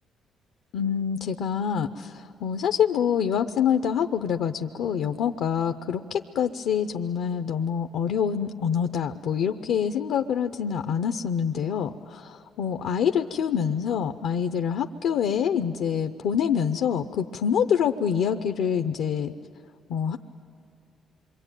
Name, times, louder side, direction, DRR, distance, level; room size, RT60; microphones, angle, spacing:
voice 1, 0.7-19.3 19.9-20.2, left 8 dB, 85° left, 7 dB, 0.7 m, -26 dB
27.0 x 23.5 x 9.1 m, 2.4 s
cardioid pair, 90°, 0 cm